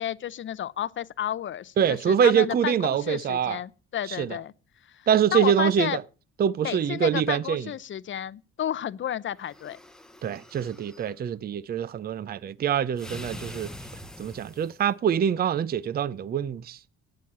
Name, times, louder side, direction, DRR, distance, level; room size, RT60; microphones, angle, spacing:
voice 1, 0.0-4.5 4.9-6.0 6.6-9.8, left 10 dB, 45° left, 0.6 m, -32 dB
voice 2, 1.8-3.6 4.2-4.4 5.1-6.0 6.4-7.7 10.2-13.7 14.2-16.8, right 8 dB, 35° right, 0.5 m, -24 dB
sound 1, 9.4-11.1 13.0-14.9, left 1 dB, ahead, 0.9 m, -43 dB
8.6 x 7.6 x 8.5 m
cardioid pair, 105°, 29 cm